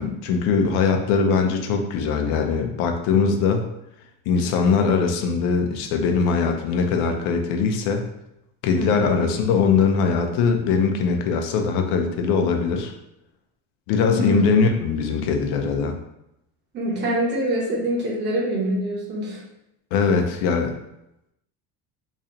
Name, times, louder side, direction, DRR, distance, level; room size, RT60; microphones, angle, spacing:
voice 1, 0.0-3.7 4.3-8.1 8.6-12.9 13.9-15.9 19.9-20.7, left 5 dB, 80° left, 5 dB, 0.7 m, -21 dB
voice 2, 8.8-9.2 14.1-14.5 16.7-19.4, right 1 dB, 35° right, -3 dB, 1.0 m, -25 dB
3.1 x 2.7 x 3.8 m, 0.85 s
cardioid pair, 170°, 34 cm